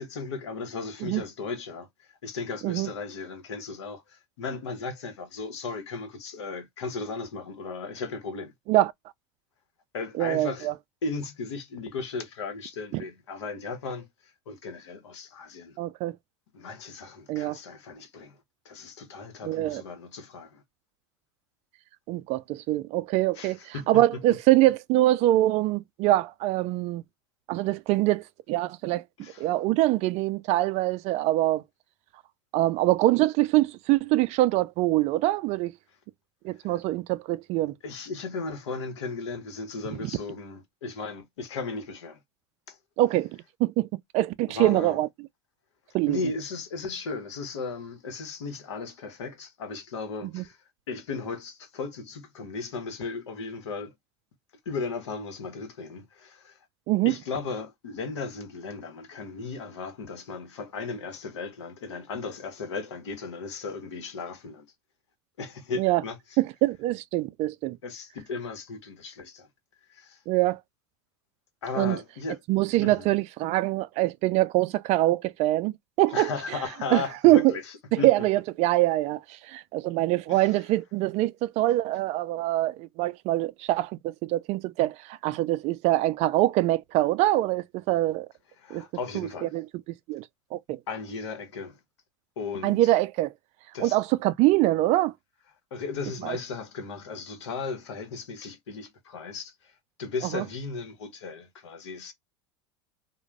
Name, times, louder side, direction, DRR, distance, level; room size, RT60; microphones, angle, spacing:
voice 1, 0.0-1.9 2.2-8.5 9.9-10.7 11.0-15.8 16.5-18.4 18.6-20.6 23.3-24.0 29.2-29.5 36.6-36.8 37.8-42.2 42.7-42.8 44.5-45.0 46.1-50.6 50.9-53.9 54.6-56.6 57.0-64.7 65.4-66.4 67.8-69.5 69.9-70.2 71.6-72.4 72.8-73.1 76.1-78.1 80.3-80.6 88.6-89.6 90.9-91.8 92.4-92.9 93.7-94.0 95.7-102.1, left 4 dB, 85° left, 1.0 m, -36 dB
voice 2, 10.2-10.7 12.9-13.0 15.8-16.1 17.3-17.6 19.4-19.8 22.1-27.0 27.5-29.0 29.4-31.6 32.5-35.7 36.4-37.7 43.0-43.9 44.1-45.1 45.9-46.2 50.3-50.4 56.9-57.1 65.8-66.0 66.4-67.8 70.3-70.6 71.8-72.0 72.5-76.3 76.9-77.5 77.9-79.2 79.5-88.3 88.7-88.8 89.1-89.3 89.5-89.6 90.1-90.2 90.5-90.8 92.6-93.3 93.8-95.1 96.2-96.4 100.3-100.4, right 16 dB, 50° right, 0.4 m, -24 dB
2.4 x 2.1 x 3.2 m
hypercardioid pair, 90°, 15 cm